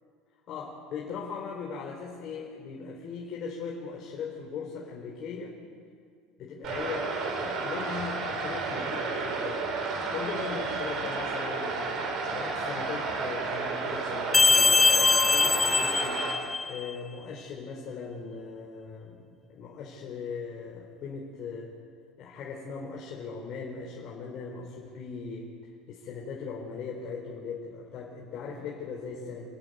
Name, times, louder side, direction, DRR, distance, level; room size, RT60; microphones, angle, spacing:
voice 1, 0.5-5.5 6.4-9.7 10.1-11.8 12.3-16.3 16.7-21.7 22.2-25.5 25.9-29.4, left 5 dB, 45° left, -1 dB, 4.1 m, -39 dB
sound 1, 6.6-16.3, right 4 dB, 45° right, 4.6 m, -32 dB
sound 2, 14.3-16.9, left 4 dB, 15° left, 0.6 m, -22 dB
27.5 x 15.5 x 9.6 m, 2.1 s
cardioid pair, 145°, 0 cm